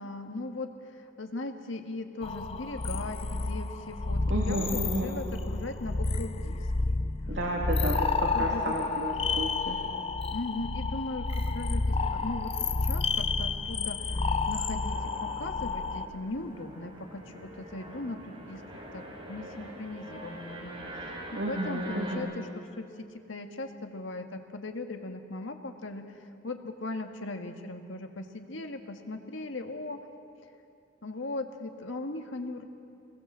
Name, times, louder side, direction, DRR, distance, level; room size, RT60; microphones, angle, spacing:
voice 1, 0.0-7.0 8.3-8.8 10.3-14.0 14.5-18.6 18.9-20.8 21.3-26.0 26.4-30.0 31.0-32.6, left 2 dB, 85° left, 5 dB, 1.8 m, -38 dB
sound 1, 2.2-16.1, left 3 dB, 30° left, 0.6 m, -30 dB
voice 2, 4.3-5.1 7.3-9.8 21.4-22.3, right 1 dB, 65° right, -2 dB, 2.8 m, -32 dB
sound 2, 11.2-22.2, right 1 dB, 25° right, 4.6 m, -45 dB
26.0 x 20.5 x 7.5 m, 2.5 s
head